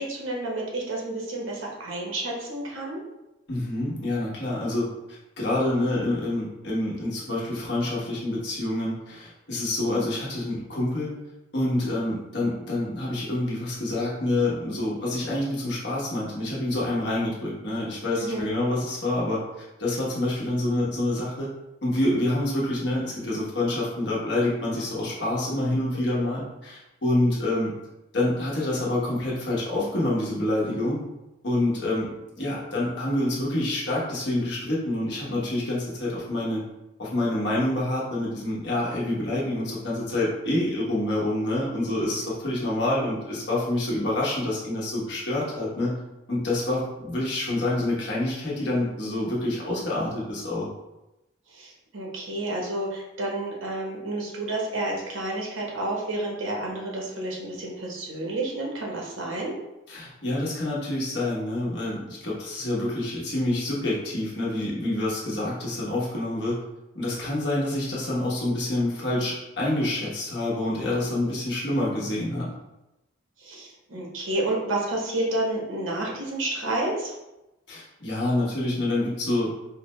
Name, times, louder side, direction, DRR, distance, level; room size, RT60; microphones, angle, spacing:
voice 1, 0.0-3.0 18.2-18.5 26.1-26.3 51.5-59.6 73.4-77.1, right 2 dB, 85° right, -2 dB, 1.0 m, -30 dB
voice 2, 3.5-4.9 5.4-11.1 11.5-21.5 21.8-27.7 28.1-31.0 31.4-32.1 32.4-36.6 37.0-46.0 46.3-50.7 59.9-66.6 66.9-72.5 77.7-79.5, left 1 dB, 55° left, -6 dB, 1.1 m, -27 dB
4.9 x 2.2 x 3.1 m, 0.97 s
head